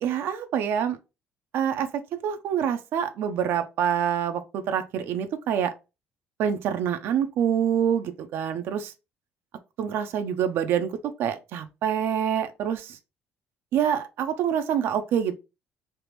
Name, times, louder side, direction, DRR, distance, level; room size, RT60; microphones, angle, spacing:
voice 1, 0.0-1.0 1.5-1.9 2.2-5.7 6.4-8.9 9.8-10.9 11.2-13.0 13.7-15.3, right 8 dB, 70° right, 0.5 m, -26 dB
3.3 x 2.5 x 3.0 m
cardioid pair, 120°, 4 cm